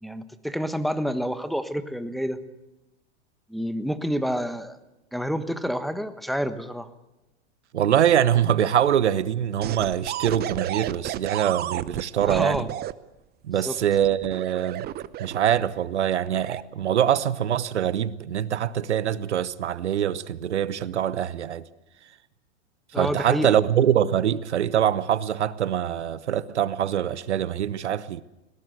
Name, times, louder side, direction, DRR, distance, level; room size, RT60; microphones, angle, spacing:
voice 1, 0.0-2.4 3.5-4.8 5.1-6.9 12.2-12.7 13.6-13.7 22.9-23.5, equal, ahead, 1.4 m, -28 dB
voice 2, 7.7-12.7 13.4-14.9 15.2-21.6 22.9-28.2, right 10 dB, 85° right, 1.1 m, -24 dB
sound 1, 9.6-12.9 14.0-15.6 16.3-16.6, right 13 dB, 30° right, 0.8 m, -32 dB
20.5 x 17.5 x 8.0 m
hypercardioid pair, 110°, 33 cm